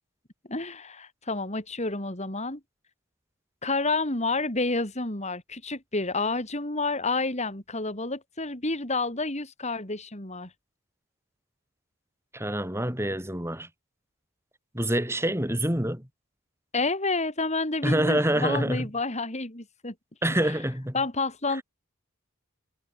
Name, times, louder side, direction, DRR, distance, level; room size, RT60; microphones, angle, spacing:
voice 1, 0.5-2.6 3.6-10.5 16.7-19.9 20.4-20.6 20.9-21.6, left 3 dB, 30° left, 4.2 m, -29 dB
voice 2, 12.3-13.7 14.7-16.0 17.8-18.9 20.2-21.0, right 1 dB, 10° right, 7.9 m, -26 dB
head